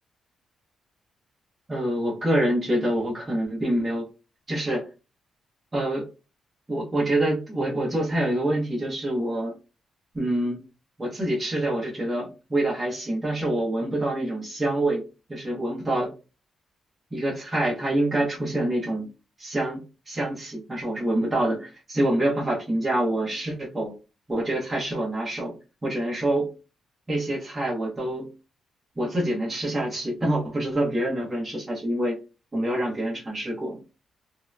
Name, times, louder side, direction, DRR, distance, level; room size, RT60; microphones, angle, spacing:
voice 1, 1.7-4.1 4.5-4.9 5.7-6.0 6.7-9.5 10.1-10.6 11.0-16.1 17.1-19.1 19.4-23.9 24.3-25.5 25.8-26.5 27.1-28.3 29.0-32.2 32.5-33.8, right 1 dB, 15° right, -5 dB, 0.9 m, -26 dB
2.8 x 2.1 x 2.3 m, 0.31 s
cardioid pair, 155°, 0 cm